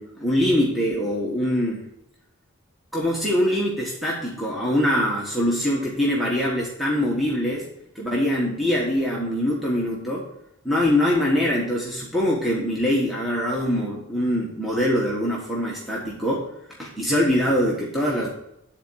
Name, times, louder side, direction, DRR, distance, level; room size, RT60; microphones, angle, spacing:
voice 1, 0.0-1.8 2.9-7.7 7.9-10.2 10.6-16.5 16.8-18.3, equal, ahead, -5 dB, 1.4 m, -23 dB
10.0 x 4.3 x 6.3 m, 0.81 s
head